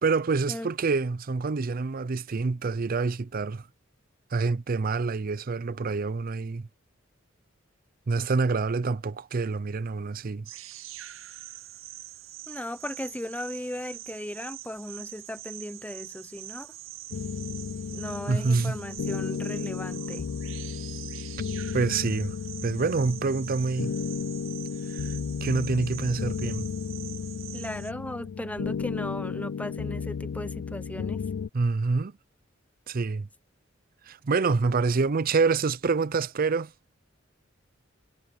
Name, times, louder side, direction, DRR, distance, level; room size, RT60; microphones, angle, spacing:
voice 1, 0.0-3.7 4.3-6.7 8.1-10.5 18.3-18.8 21.7-22.3 22.6-23.9 24.9-25.1 25.4-26.7 31.5-32.1 32.9-33.3 34.1-36.7, right 4 dB, 45° right, 0.5 m, -26 dB
sound 1, 10.4-27.9, right 14 dB, 85° right, 0.6 m, -44 dB
voice 2, 12.5-16.7 17.9-20.3 27.5-31.2, left 1 dB, 5° left, 0.8 m, -37 dB
sound 2, 17.1-31.5, left 6 dB, 75° left, 0.4 m, -34 dB
head